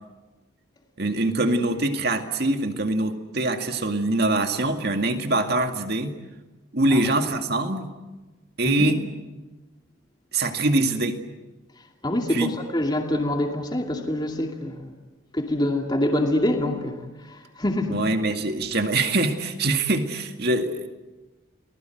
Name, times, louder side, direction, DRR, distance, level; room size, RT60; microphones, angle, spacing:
voice 1, 1.0-6.1 6.7-7.9 8.6-9.0 10.3-11.2 12.3-12.5 17.9-20.9, right 2 dB, 50° right, 6 dB, 2.1 m, -24 dB
voice 2, 12.0-14.9 15.3-18.0, left 1 dB, 20° left, 2 dB, 2.5 m, -25 dB
30.0 x 20.5 x 7.9 m, 1.2 s
head